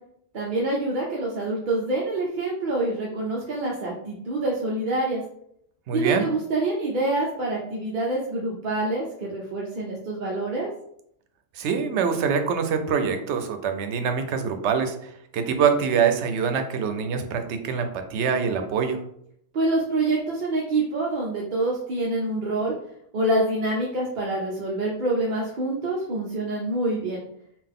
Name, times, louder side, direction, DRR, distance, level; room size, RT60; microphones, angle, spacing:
voice 1, 0.3-5.2 5.9-10.7 19.5-22.7 23.1-27.2, right 2 dB, 55° right, -3 dB, 0.7 m, -26 dB
voice 2, 5.9-6.3 11.6-19.0, right 6 dB, 85° right, 6 dB, 0.9 m, -24 dB
3.8 x 2.4 x 3.6 m, 0.72 s
omnidirectional pair, 1.1 m